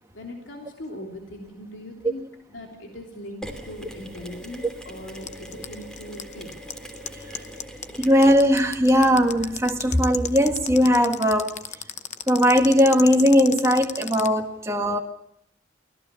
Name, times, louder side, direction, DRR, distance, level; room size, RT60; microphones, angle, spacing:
voice 1, 0.1-2.2 2.5-6.5, left 1 dB, 90° left, 3.3 m, -40 dB
Mechanisms, 3.4-10.5, equal, 5° left, 2.7 m, -42 dB
sound 1, 5.1-14.3, left 9 dB, 40° left, 0.9 m, -32 dB
voice 2, 8.0-11.5 12.3-15.0, equal, 15° right, 1.7 m, -19 dB
24.5 x 17.5 x 7.0 m
head